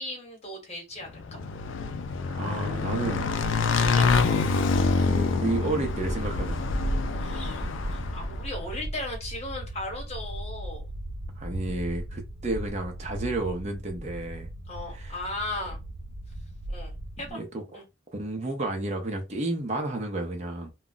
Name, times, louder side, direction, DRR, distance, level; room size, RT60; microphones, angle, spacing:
voice 1, 0.0-1.4 3.8-4.6 7.2-10.9 14.7-15.8 16.7-17.4 17.7-17.8, left 1 dB, 35° left, 1.1 m, -37 dB
Motorcycle / Engine, 1.2-8.5, left 4 dB, 70° left, 0.3 m, -26 dB
voice 2, 2.3-3.3 5.1-6.6 11.4-14.5 14.9-15.2 17.3-17.8 18.1-20.7, right 2 dB, 35° right, 0.6 m, -31 dB
sound 1, 5.8-17.3, right 1 dB, 75° right, 0.6 m, -36 dB
2.3 x 2.0 x 3.8 m
head